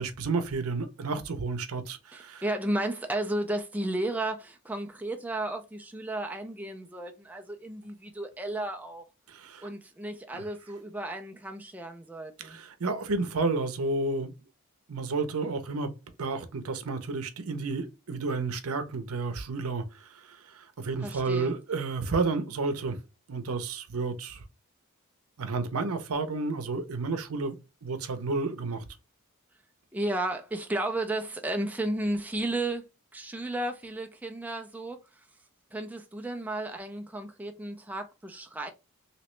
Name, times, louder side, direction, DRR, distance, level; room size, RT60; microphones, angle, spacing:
voice 1, 0.0-2.4 9.3-9.7 10.3-10.4 12.4-14.3 14.9-15.9 16.2-23.0 23.3-24.4 25.4-27.6 27.8-28.9, right 3 dB, 75° right, 0.7 m, -31 dB
voice 2, 2.1-9.0 9.6-12.6 21.0-21.5 29.9-32.9 33.1-35.0 35.7-38.7, right 1 dB, 5° right, 0.3 m, -33 dB
3.1 x 2.9 x 3.1 m
head